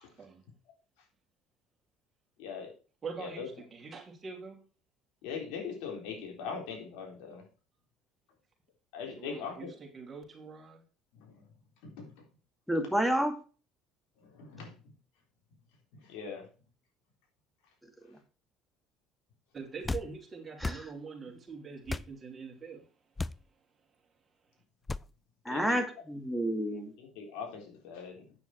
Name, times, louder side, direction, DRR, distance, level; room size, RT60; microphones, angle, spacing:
voice 1, 2.4-2.7 3.2-3.5 5.2-7.4 8.9-9.7 11.1-11.4 11.8-12.1 14.2-14.8 15.9-16.5 25.5-25.8 27.0-28.3, left 6 dB, 80° left, 3.8 m, -41 dB
voice 2, 3.0-4.6 9.1-10.8 19.5-22.8, right 5 dB, 30° right, 3.4 m, -44 dB
voice 3, 12.7-13.3 18.1-18.2 20.6-20.9 25.5-26.9, right 1 dB, ahead, 2.2 m, -30 dB
sound 1, 19.8-20.1 20.6-20.8 21.9-22.1 23.2-23.4 24.9-25.1, left 3 dB, 20° left, 0.4 m, -34 dB
8.7 x 7.0 x 4.5 m
supercardioid pair, 90°, 0 cm